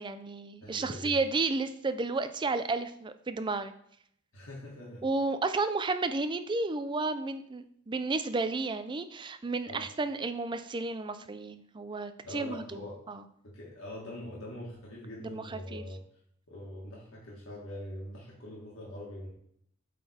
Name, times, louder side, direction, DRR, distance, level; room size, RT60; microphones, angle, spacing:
voice 1, 0.0-3.7 5.0-13.2 15.2-15.8, right 3 dB, 25° right, 10 dB, 0.4 m, -32 dB
voice 2, 0.6-1.2 4.3-5.0 9.6-9.8 12.2-13.0 13.4-16.0 16.5-19.3, left 1 dB, 70° left, -5 dB, 1.7 m, -43 dB
8.2 x 3.9 x 4.3 m, 0.68 s
head